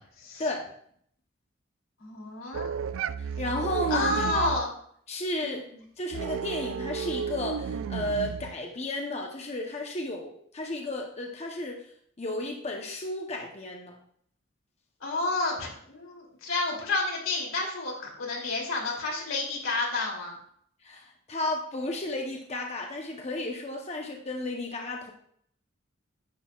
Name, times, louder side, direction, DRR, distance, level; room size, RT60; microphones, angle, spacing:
voice 1, 2.0-2.7 3.9-4.7 5.4-5.6 15.0-20.4, left 3 dB, 90° left, -2 dB, 2.9 m, -30 dB
sound 1, 2.5-4.7 6.1-8.5, right 7 dB, 75° right, 0.3 m, -32 dB
voice 2, 3.4-4.5 5.1-5.6 6.0-11.8 12.2-14.0 20.8-25.1, left 1 dB, 35° left, 1 dB, 0.8 m, -33 dB
10.5 x 7.6 x 2.4 m, 0.65 s
head